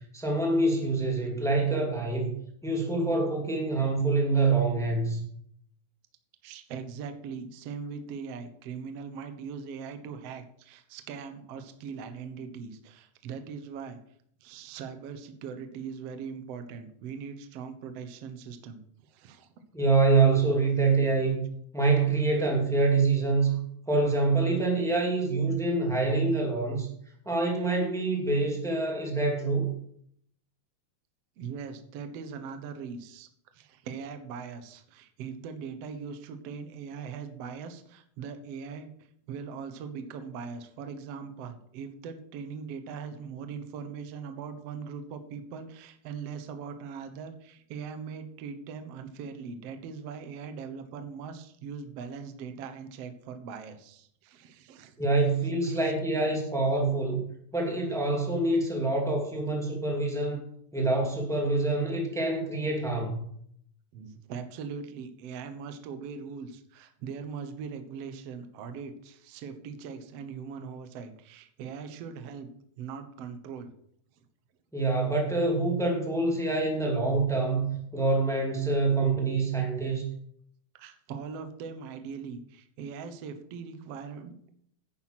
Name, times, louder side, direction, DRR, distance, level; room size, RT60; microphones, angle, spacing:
voice 1, 0.1-2.3 2.6-5.2 19.7-21.4 21.7-23.6 23.9-26.9 27.2-29.7 55.0-57.2 57.5-60.4 60.7-63.2 74.7-77.6 77.9-80.1, right 3 dB, ahead, 0 dB, 1.8 m, -26 dB
voice 2, 6.4-14.0 14.4-19.5 31.4-55.1 55.6-55.9 63.9-72.5 72.8-73.7 80.7-84.5, right 6 dB, 65° right, 8 dB, 1.6 m, -40 dB
10.5 x 8.9 x 6.0 m, 0.68 s
omnidirectional pair, 4.1 m